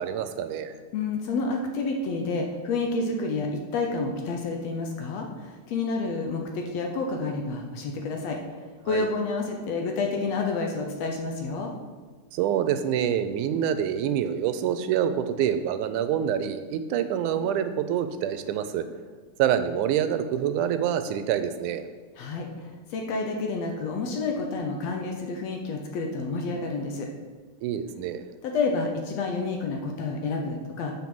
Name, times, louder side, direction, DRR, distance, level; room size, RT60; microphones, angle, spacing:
voice 1, 0.0-0.8 8.9-9.1 12.3-18.8 19.4-21.8 27.6-28.3, right 9 dB, 90° right, 10 dB, 2.1 m, -26 dB
voice 2, 0.9-11.7 22.2-27.1 28.4-30.9, left 3 dB, 70° left, 2 dB, 1.8 m, -29 dB
7.2 x 5.6 x 6.0 m, 1.4 s
omnidirectional pair, 3.5 m